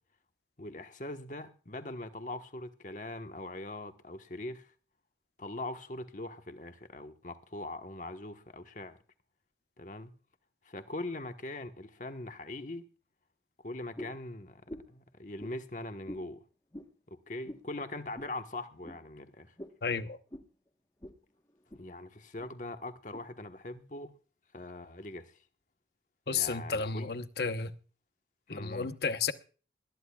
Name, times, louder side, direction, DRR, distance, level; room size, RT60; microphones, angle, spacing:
voice 1, 0.6-4.7 5.4-9.0 9.8-10.1 10.6-12.8 13.6-14.6 14.9-16.4 17.1-19.5 21.7-24.1 24.5-25.3 26.3-27.1 28.5-28.9, left 2 dB, 45° left, 1.3 m, -41 dB
sound 1, 14.0-14.2 14.7-15.0 15.4-15.6 16.1-16.3 16.7-16.9 17.5-17.7 18.2-18.3 18.8-19.0 19.6-19.8 20.3-20.5 21.0-21.2 21.5-21.9 22.4-22.5 23.1-23.2, equal, 20° left, 1.2 m, -45 dB
voice 2, 19.8-20.2 26.3-27.7 28.5-29.3, left 5 dB, 65° left, 1.0 m, -32 dB
21.0 x 13.5 x 2.4 m
head